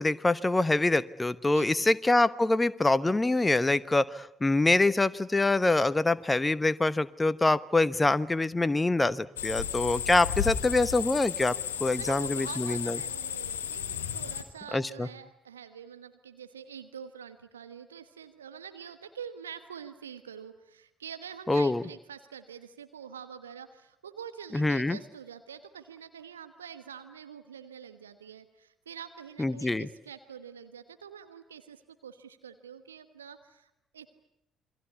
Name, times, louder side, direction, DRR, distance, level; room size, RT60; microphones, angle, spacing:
voice 1, 0.0-13.0 14.7-15.1 21.5-21.8 24.5-25.0 29.4-29.9, left 2 dB, 15° left, 16 dB, 1.1 m, -25 dB
voice 2, 1.5-1.9 12.0-34.1, right 8 dB, 80° right, 10 dB, 1.2 m, -46 dB
sound 1, 9.4-14.4, left 8 dB, 75° left, 1.5 m, -33 dB
28.5 x 22.5 x 8.3 m, 0.82 s
figure-of-eight pair, 45°, 0 cm